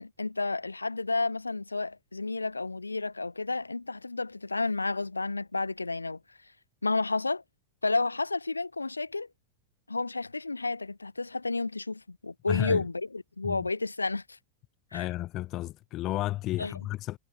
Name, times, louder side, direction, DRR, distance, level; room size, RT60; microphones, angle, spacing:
voice 1, 0.0-6.2 6.8-7.4 7.8-9.3 9.9-14.4 14.9-15.1 16.6-16.7, left 3 dB, 80° left, 2.3 m, -31 dB
voice 2, 12.5-12.8 13.4-13.7 14.9-17.2, left 16 dB, 35° left, 1.0 m, -32 dB
figure-of-eight pair, 90°, 0 cm